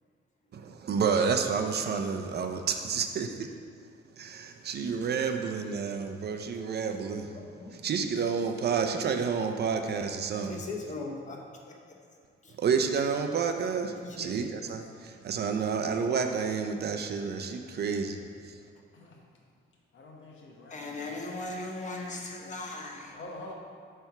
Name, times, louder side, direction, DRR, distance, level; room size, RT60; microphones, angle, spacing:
voice 1, 0.5-3.5 4.2-7.3 7.8-10.6 12.6-18.2 18.5-18.6, right 6 dB, 50° right, 5 dB, 0.5 m, -30 dB
voice 2, 7.3-7.7 10.4-11.4 14.0-14.4 20.7-23.2, left 2 dB, 35° left, 1 dB, 1.0 m, -38 dB
voice 3, 18.7-19.2 19.9-21.1 23.1-23.5, left 2 dB, 70° left, -1 dB, 1.3 m, -46 dB
8.8 x 3.5 x 5.8 m, 2.1 s
wide cardioid pair, 160°, 21 cm